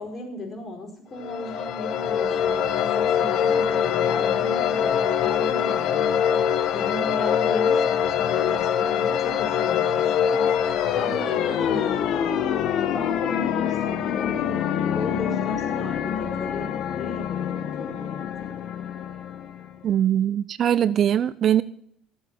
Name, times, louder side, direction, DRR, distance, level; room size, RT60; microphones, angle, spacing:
voice 1, 0.0-12.5 12.8-14.6 14.9-18.5, left 2 dB, 30° left, 0 dB, 5.2 m, -36 dB
sound 1, 1.2-19.8, left 8 dB, 60° left, 1.2 m, -24 dB
voice 2, 19.8-21.6, right 10 dB, 45° right, 16 dB, 0.5 m, -21 dB
14.0 x 7.6 x 7.7 m, 0.64 s
cardioid pair, 130°, 0 cm